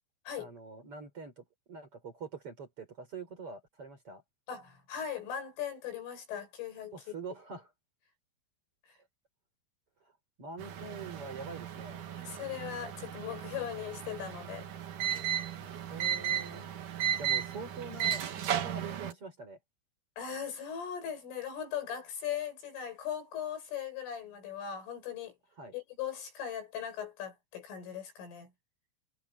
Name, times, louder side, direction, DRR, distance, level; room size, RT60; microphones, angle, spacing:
voice 1, 0.4-4.2 6.9-7.7 10.4-12.0 15.9-16.7 17.2-19.6 25.6-25.7, right 4 dB, 30° right, 4.5 m, -45 dB
voice 2, 4.5-7.0 12.2-14.7 20.2-25.3 25.7-28.5, left 9 dB, 85° left, 9.5 m, -39 dB
sound 1, 10.6-19.1, right 10 dB, 55° right, 2.5 m, -35 dB
omnidirectional pair, 5.6 m